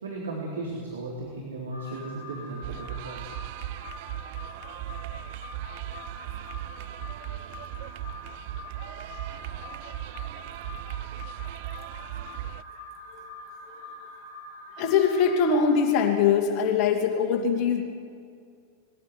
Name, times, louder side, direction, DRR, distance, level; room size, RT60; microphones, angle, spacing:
voice 1, 0.0-3.3, right 2 dB, 70° right, -2 dB, 3.8 m, -36 dB
Alarm, 1.7-15.8, left 2 dB, 90° right, 4.7 m, -44 dB
sound 1, 2.6-12.6, right 15 dB, 50° right, 0.7 m, -38 dB
voice 2, 14.8-17.8, left 6 dB, 40° left, 2 dB, 2.5 m, -23 dB
21.0 x 15.0 x 9.7 m, 2.2 s
figure-of-eight pair, 90°, 0 cm